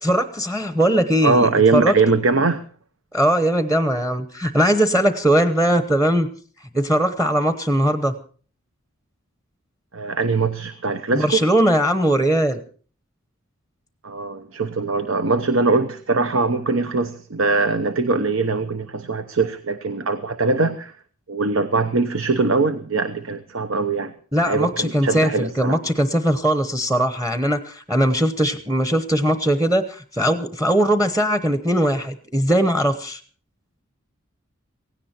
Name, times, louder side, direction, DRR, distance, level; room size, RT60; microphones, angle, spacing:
voice 1, 0.0-1.9 3.1-6.3 6.7-8.2 11.1-12.6 24.3-33.2, right 1 dB, 10° right, 10 dB, 0.9 m, -20 dB
voice 2, 1.2-2.6 9.9-11.4 14.0-20.9 21.3-24.1 24.4-25.8, right 3 dB, 75° right, 10 dB, 1.0 m, -21 dB
17.0 x 17.0 x 4.4 m, 0.42 s
head